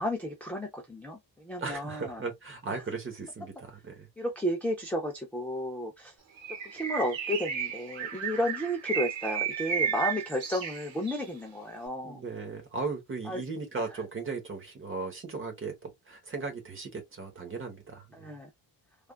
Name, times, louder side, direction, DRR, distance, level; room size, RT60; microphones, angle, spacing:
voice 1, 0.0-2.2 4.2-6.1 6.6-12.2 13.3-13.4 18.1-18.5, equal, 5° left, 0.4 m, -32 dB
voice 2, 1.6-4.1 12.0-18.4, right 4 dB, 25° right, 0.9 m, -37 dB
Bird, 6.4-11.3, right 7 dB, 75° right, 1.0 m, -33 dB
3.3 x 2.4 x 2.2 m
wide cardioid pair, 165°, 47 cm